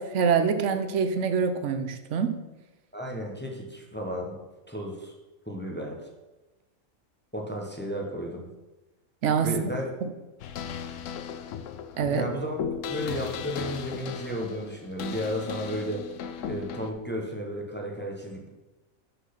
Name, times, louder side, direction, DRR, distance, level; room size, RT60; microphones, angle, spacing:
voice 1, 0.0-2.3 9.2-9.6 10.0-10.1 12.0-12.3, right 6 dB, 65° right, 9 dB, 1.0 m, -25 dB
voice 2, 2.9-4.4 4.7-5.1 5.5-6.0 7.3-8.5 9.4-9.9 12.1-12.6 12.9-16.1 16.4-18.5, equal, 10° left, -1 dB, 0.9 m, -33 dB
sound 1, 10.4-16.9, left 7 dB, 70° left, 1.0 m, -36 dB
6.1 x 5.7 x 5.9 m, 1.1 s
omnidirectional pair, 1.4 m